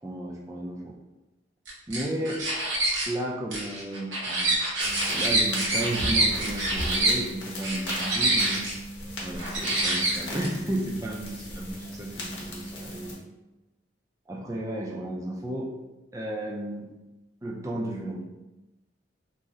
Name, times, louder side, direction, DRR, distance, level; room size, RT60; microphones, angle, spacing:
voice 1, 0.0-0.9 1.9-2.5 3.1-4.6 5.1-8.7 9.2-13.2 14.3-15.7 16.1-16.9 17.4-18.3, right 1 dB, 15° right, -1 dB, 0.3 m, -33 dB
sound 1, 1.7-3.1 3.5-7.2 7.6-8.7 9.4-10.5, right 2 dB, 80° right, 0.9 m, -26 dB
sound 2, 4.8-13.1, equal, 70° left, 0.7 m, -37 dB
2.6 x 2.0 x 3.7 m, 1.0 s
head